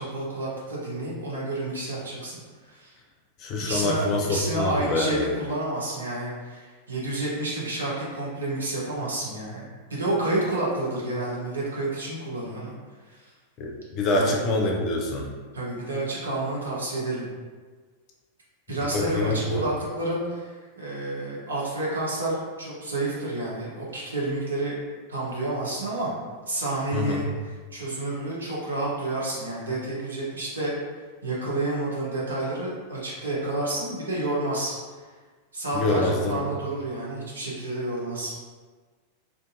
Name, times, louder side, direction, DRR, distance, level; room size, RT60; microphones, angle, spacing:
voice 1, 0.0-2.4 2.7-2.9 3.7-12.7 13.0-13.2 14.1-14.3 15.5-17.3 18.7-24.7 25.1-26.1 26.5-30.7 31.2-34.8 35.5-38.3, right 2 dB, 70° right, -6 dB, 0.8 m, -29 dB
voice 2, 3.4-5.3 13.6-15.3 18.9-19.6 26.9-27.2 35.7-36.4, left 2 dB, 35° left, 0 dB, 0.5 m, -25 dB
2.5 x 2.5 x 2.6 m, 1.4 s
figure-of-eight pair, 90°, 0 cm